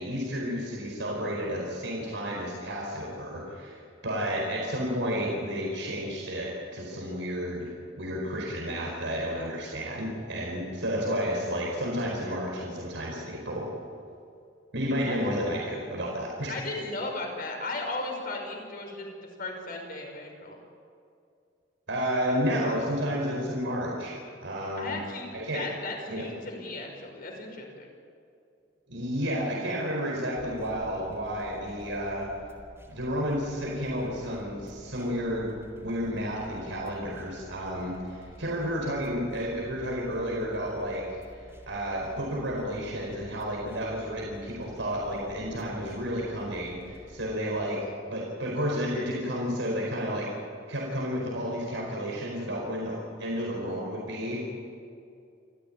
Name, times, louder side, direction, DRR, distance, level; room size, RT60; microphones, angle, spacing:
voice 1, 0.0-7.7 8.0-13.7 14.7-16.5 21.9-24.1 24.4-25.0 25.3-25.6 26.1-26.3 28.9-32.3 32.9-47.8 48.1-50.3 50.7-54.5, equal, 80° right, -2 dB, 4.7 m, -31 dB
voice 2, 16.5-19.1 19.4-20.6 24.8-27.9, left 2 dB, 50° left, 2 dB, 5.6 m, -36 dB
sound 1, 30.4-47.3, right 1 dB, 15° right, 3.9 m, -51 dB
28.5 x 14.5 x 8.9 m, 2.4 s
head